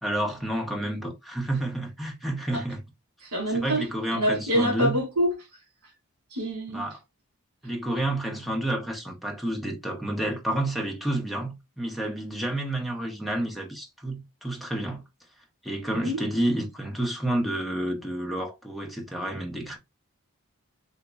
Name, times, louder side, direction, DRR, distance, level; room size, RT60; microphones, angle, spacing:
voice 1, 0.0-2.8 3.5-5.0 6.7-7.0 7.6-15.0 15.6-19.8, right 1 dB, ahead, 0.8 m, -30 dB
voice 2, 3.2-5.3 6.3-6.9 15.9-16.2, equal, 85° right, 1.9 m, -26 dB
3.9 x 2.9 x 2.3 m
head